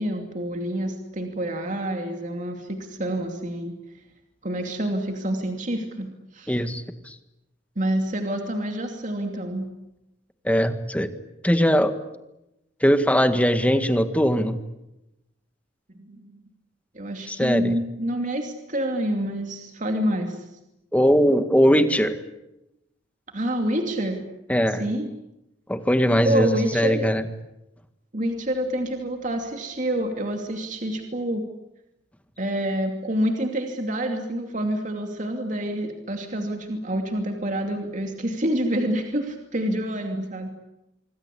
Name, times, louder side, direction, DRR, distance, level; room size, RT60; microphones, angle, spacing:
voice 1, 0.0-3.7 4.4-6.6 7.8-9.7 15.9-16.4 16.9-20.4 23.3-24.3 24.8-25.1 26.2-27.1 28.1-31.4 32.4-40.5, right 1 dB, 45° right, 4 dB, 2.7 m, -27 dB
voice 2, 6.5-6.8 10.4-11.1 11.4-11.9 12.8-14.6 17.3-17.8 20.9-22.2 24.5-24.8 25.7-26.5 26.7-27.2, equal, 10° left, 9 dB, 1.8 m, -20 dB
26.0 x 25.0 x 8.5 m, 0.89 s
head